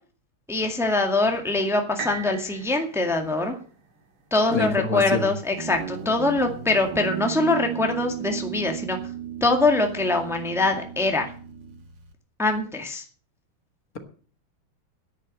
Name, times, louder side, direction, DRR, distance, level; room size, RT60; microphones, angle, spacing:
voice 1, 0.5-3.6 4.3-9.0 9.4-11.3 12.4-13.0, left 2 dB, ahead, 4 dB, 1.7 m, -23 dB
sound 1, 2.0-5.9 6.5-6.6, right 6 dB, 80° right, 3.2 m, -41 dB
voice 2, 4.5-5.3, left 2 dB, 45° left, 5 dB, 2.0 m, -26 dB
Guitar, 5.6-12.1, right 9 dB, 60° right, 2.3 m, -35 dB
11.0 x 10.5 x 7.7 m, 0.43 s
omnidirectional pair, 2.3 m